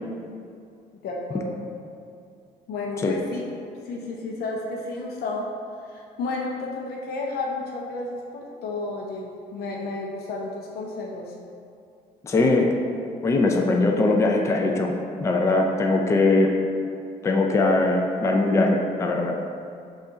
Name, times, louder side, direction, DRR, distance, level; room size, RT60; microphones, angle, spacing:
voice 1, 1.0-1.6 2.7-3.5 3.8-5.5 5.9-11.3, left 3 dB, 70° left, -2 dB, 0.6 m, -32 dB
voice 2, 12.2-12.7 13.2-14.9 15.2-16.5 17.2-19.3, left 2 dB, 15° left, 1 dB, 0.4 m, -21 dB
5.3 x 2.4 x 4.0 m, 2.5 s
cardioid pair, 110°, 17 cm